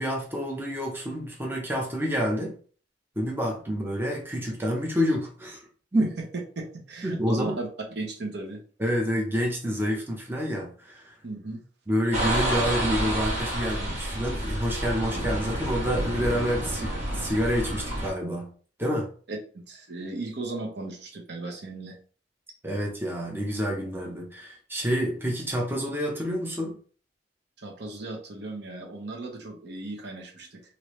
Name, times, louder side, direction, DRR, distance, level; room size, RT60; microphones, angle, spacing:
voice 1, 0.0-2.6 3.2-5.6 5.9-6.1 7.0-7.6 8.8-11.1 11.9-18.5 18.8-19.1 22.6-26.8, equal, 10° right, -1 dB, 0.7 m, -28 dB
voice 2, 6.6-7.7 8.0-8.6 11.2-11.6 19.3-22.0 27.6-30.6, right 2 dB, 65° right, 1 dB, 0.8 m, -36 dB
sound 1, 12.1-18.1, right 1 dB, 35° right, 1.4 m, -29 dB
3.1 x 2.7 x 3.1 m, 0.43 s
head